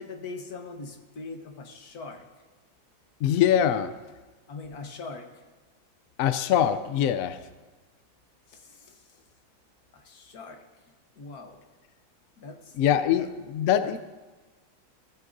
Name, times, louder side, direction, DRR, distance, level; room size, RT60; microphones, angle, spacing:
voice 1, 0.0-2.3 4.5-5.4 8.5-9.2 9.9-10.6 11.1-11.6 12.4-12.7 13.1-13.3 13.8-14.0, left 3 dB, 55° left, 4 dB, 1.6 m, -41 dB
voice 2, 3.2-3.9 6.2-7.4 12.8-14.0, left 10 dB, 85° left, 11 dB, 0.7 m, -23 dB
17.5 x 14.5 x 2.6 m, 1.2 s
omnidirectional pair, 2.1 m